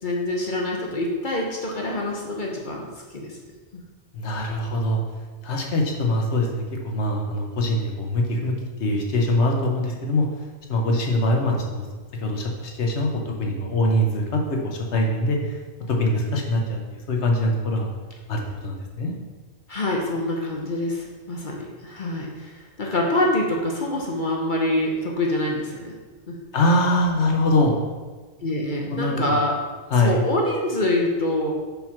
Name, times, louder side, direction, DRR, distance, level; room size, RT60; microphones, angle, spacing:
voice 1, 0.0-3.4 3.7-3.8 19.7-25.9 26.3-26.4 28.4-29.6 30.0-31.5, left 1 dB, 50° left, -1 dB, 1.0 m, -25 dB
voice 2, 4.1-5.0 5.4-10.2 10.7-11.8 12.2-15.4 15.9-16.8 17.1-17.9 18.3-19.1 26.5-27.8 28.9-29.4 29.9-30.2, left 1 dB, 90° left, 1 dB, 1.3 m, -23 dB
5.3 x 4.4 x 5.8 m, 1.3 s
omnidirectional pair, 1.1 m